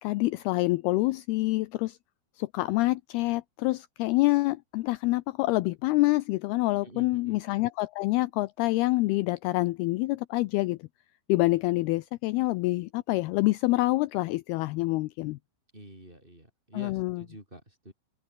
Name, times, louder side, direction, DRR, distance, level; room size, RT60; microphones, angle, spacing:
voice 1, 0.0-2.0 2.4-10.8 11.3-15.4 16.7-17.2, left 20 dB, 85° left, 2.2 m, -26 dB
voice 2, 6.8-7.4 15.7-17.9, right 1 dB, 10° right, 5.4 m, -47 dB
omnidirectional pair, 5.3 m